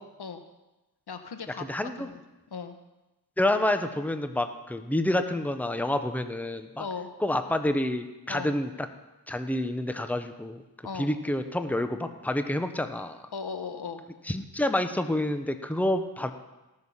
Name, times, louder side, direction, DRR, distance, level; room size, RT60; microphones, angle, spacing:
voice 1, 1.1-1.7 2.0-2.2 2.5-2.8 6.8-7.1 8.3-8.6 10.8-11.1 13.3-14.0, left 5 dB, 70° left, 8 dB, 1.2 m, -37 dB
voice 2, 1.6-2.1 3.4-6.8 7.2-8.9 9.3-10.6 10.9-13.2 14.3-16.3, left 1 dB, 5° left, 8 dB, 1.0 m, -28 dB
18.5 x 6.5 x 5.7 m, 1.0 s
cardioid pair, 45°, 40 cm